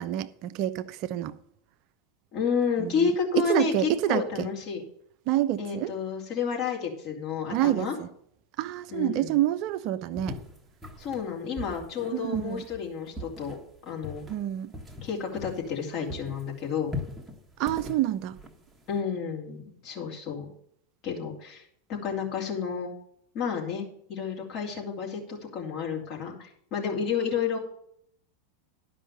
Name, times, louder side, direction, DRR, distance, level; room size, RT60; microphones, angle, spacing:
voice 1, 0.0-1.3 2.8-3.1 3.4-4.5 5.3-5.9 7.5-8.1 8.6-10.4 12.1-12.6 14.3-14.7 17.6-18.4, right 13 dB, 50° right, 0.5 m, -27 dB
voice 2, 2.3-4.8 5.6-7.9 8.9-9.4 11.0-13.6 13.9-14.2 15.0-17.0 18.9-20.5 21.0-21.6 21.9-22.9 23.3-27.6, left 6 dB, 45° left, 2.9 m, -31 dB
sound 1, 10.2-19.0, left 2 dB, 10° right, 1.3 m, -40 dB
11.5 x 5.4 x 6.8 m
figure-of-eight pair, 90°, 0 cm